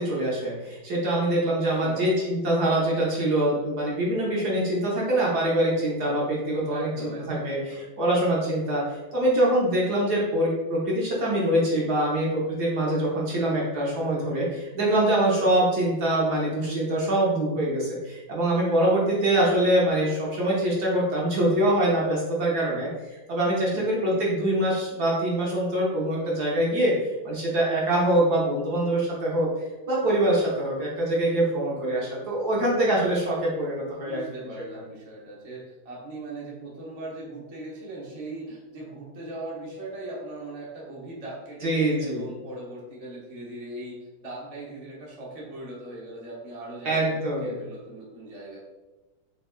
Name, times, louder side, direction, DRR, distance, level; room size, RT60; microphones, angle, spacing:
voice 1, 0.0-29.5 29.9-34.2 41.6-42.3 46.8-47.6, right 1 dB, 55° right, -5 dB, 1.4 m, -24 dB
voice 2, 1.5-2.3 6.7-7.9 23.7-23.9 24.1-24.4 33.9-48.6, right 2 dB, 25° right, -5 dB, 0.8 m, -39 dB
4.2 x 3.3 x 3.6 m, 1.1 s
omnidirectional pair, 2.3 m